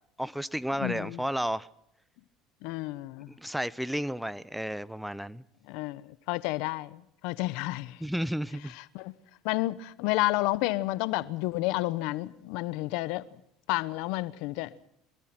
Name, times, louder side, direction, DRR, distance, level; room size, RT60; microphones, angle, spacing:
voice 1, 0.2-1.7 3.4-5.4 8.0-8.7, equal, ahead, 0.8 m, -32 dB
voice 2, 0.8-1.2 2.6-3.3 5.7-8.0 8.9-9.1 9.4-13.3 13.7-14.7, left 19 dB, 75° left, 0.9 m, -30 dB
24.5 x 22.0 x 6.0 m
supercardioid pair, 85°, 0 cm